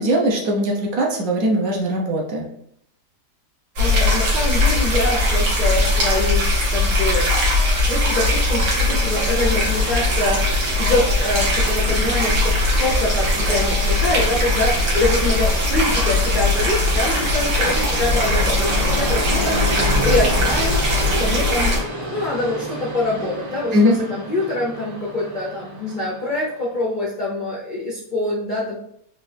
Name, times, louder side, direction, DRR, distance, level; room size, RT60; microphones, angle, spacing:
voice 1, 0.0-2.5 23.7-23.9, equal, 65° right, -1 dB, 1.2 m, -20 dB
voice 2, 3.8-7.3 7.9-21.8 22.1-28.7, left 2 dB, 75° left, -4 dB, 0.4 m, -25 dB
sound 1, 3.8-21.8, left 1 dB, 80° right, 1.7 m, -20 dB
Train, 8.3-26.8, right 1 dB, 15° right, 0.6 m, -31 dB
4.0 x 2.6 x 3.2 m, 0.72 s
omnidirectional pair, 1.8 m